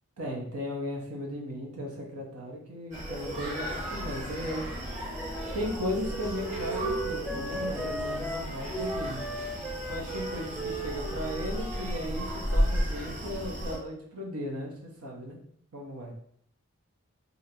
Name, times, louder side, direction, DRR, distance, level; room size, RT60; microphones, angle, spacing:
voice 1, 0.2-4.7 5.5-9.2 9.9-15.4 15.7-16.1, equal, 85° right, -1 dB, 1.0 m, -36 dB
Screaming, 2.9-13.8, equal, 35° right, 1.4 m, -34 dB
Wind instrument woodwind instrument, 5.1-12.4, right 1 dB, ahead, 0.3 m, -38 dB
2.8 x 2.5 x 4.3 m, 0.66 s
head